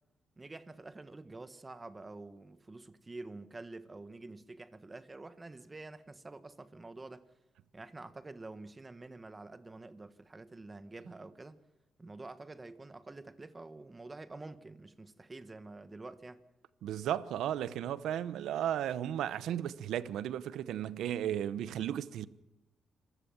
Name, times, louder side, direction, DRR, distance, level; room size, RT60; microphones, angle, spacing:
voice 1, 0.4-7.2 7.7-11.6 12.0-16.4, right 2 dB, 20° right, 1.6 m, -48 dB
voice 2, 16.8-22.3, right 11 dB, 80° right, 0.9 m, -35 dB
26.5 x 15.5 x 7.3 m
cardioid pair, 90°, 0 cm